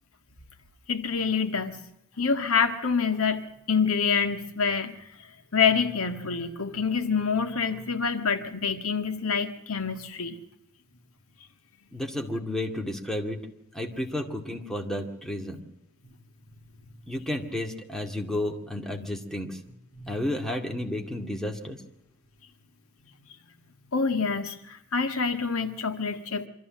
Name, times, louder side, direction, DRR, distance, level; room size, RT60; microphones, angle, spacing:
voice 1, 0.9-1.8 2.2-5.1 5.5-10.4 19.9-20.1 23.9-26.5, left 5 dB, 75° left, 7 dB, 1.8 m, -26 dB
voice 2, 11.9-13.4 13.7-15.6 17.1-19.6 20.1-21.8, left 1 dB, ahead, 2 dB, 2.2 m, -32 dB
24.5 x 14.0 x 7.5 m, 0.84 s
head